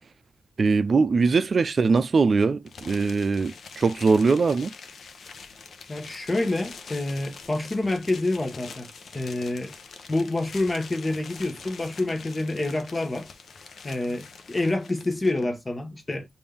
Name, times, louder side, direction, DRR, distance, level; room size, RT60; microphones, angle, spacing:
voice 1, 0.6-4.7, right 4 dB, 55° right, 0.4 m, -21 dB
sound 1, 2.7-15.4, left 5 dB, 70° left, 0.7 m, -45 dB
voice 2, 5.9-8.9 9.1-9.7 10.1-13.3 13.8-16.3, left 2 dB, 30° left, 1.1 m, -27 dB
5.2 x 2.6 x 3.4 m
cardioid pair, 75°, 0 cm